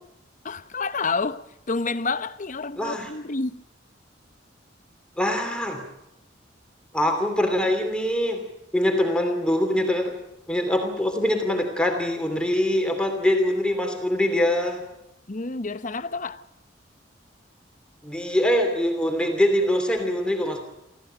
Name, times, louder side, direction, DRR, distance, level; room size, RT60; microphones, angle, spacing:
voice 1, 0.4-3.6 15.3-16.4, left 3 dB, 40° left, 1.0 m, -29 dB
voice 2, 2.8-3.1 5.2-5.8 6.9-8.4 8.7-10.2 10.5-14.8 18.0-20.6, left 1 dB, 5° left, 2.8 m, -23 dB
27.0 x 15.0 x 9.0 m
head